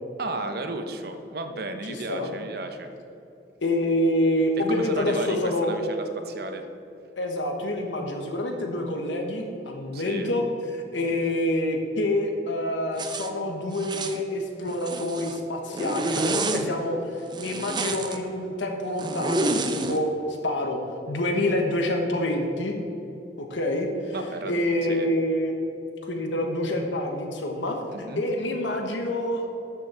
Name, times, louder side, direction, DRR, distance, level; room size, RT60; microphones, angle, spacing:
voice 1, 0.2-2.9 4.6-6.7 9.9-10.3 16.3-16.8 24.1-25.1 27.9-28.2, right 2 dB, 60° right, 7 dB, 0.9 m, -34 dB
voice 2, 1.9-2.3 3.6-5.9 7.2-10.4 10.7-20.8 21.1-22.7 23.4-24.1 24.4-25.5 26.0-27.8 28.2-29.5, left 1 dB, 90° left, 3 dB, 1.2 m, -27 dB
Zipper (clothing), 13.0-13.3 13.7-14.2 14.7-15.4 15.7-16.6 17.3-18.2 19.0-20.0, right 2 dB, 25° right, 0.6 m, -28 dB
13.0 x 6.3 x 4.3 m, 2.9 s
head